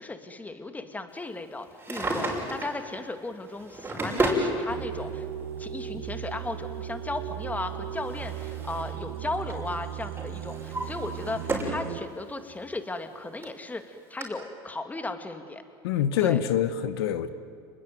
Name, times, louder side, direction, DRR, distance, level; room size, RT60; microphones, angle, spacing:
voice 1, 0.0-5.3 5.6-15.6 16.2-16.4, left 2 dB, 10° left, 8 dB, 2.3 m, -36 dB
Drawer open or close, 1.7-2.8 3.5-4.5 5.6-5.7 7.4-9.0 9.3-9.7 10.2-11.8 12.3-12.4 13.1-13.2 13.4-13.5 14.2-14.3, right 1 dB, 15° right, 6.4 m, -31 dB
sound 1, 4.7-12.0, right 11 dB, 85° right, 1.5 m, -37 dB
voice 2, 15.8-17.3, left 10 dB, 85° left, 11 dB, 1.4 m, -25 dB
29.5 x 21.0 x 9.4 m, 2.2 s
supercardioid pair, 105°, 13 cm